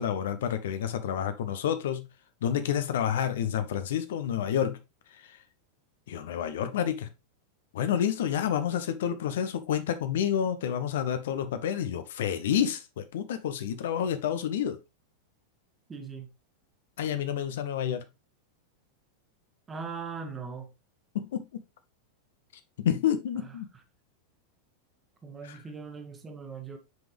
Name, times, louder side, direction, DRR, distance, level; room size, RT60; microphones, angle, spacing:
voice 1, 0.0-2.1 2.4-4.8 5.1-5.4 6.1-7.1 7.7-14.8 17.0-18.0 21.1-21.5 22.8-23.7 25.4-25.6, left 9 dB, 55° left, 0.7 m, -29 dB
voice 2, 15.9-16.3 19.7-20.7 23.4-23.8 25.2-26.8, right 5 dB, 15° right, 1.3 m, -40 dB
6.2 x 5.2 x 3.3 m
figure-of-eight pair, 90°, 0 cm